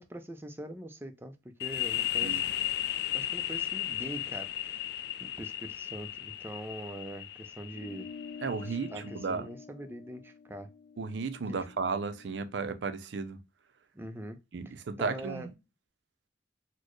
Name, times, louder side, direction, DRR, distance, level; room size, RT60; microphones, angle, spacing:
voice 1, 0.0-2.4 3.1-4.9 5.2-8.1 8.6-10.7 11.5-11.6 13.9-14.4 14.7-15.5, right 1 dB, 15° right, 0.4 m, -43 dB
sound 1, 1.6-9.1, left 12 dB, 60° left, 0.3 m, -35 dB
sound 2, 7.7-12.5, left 5 dB, 90° left, 0.7 m, -48 dB
voice 2, 8.4-9.4 11.0-13.4 14.5-15.5, right 4 dB, 75° right, 0.5 m, -34 dB
4.2 x 2.1 x 3.0 m
head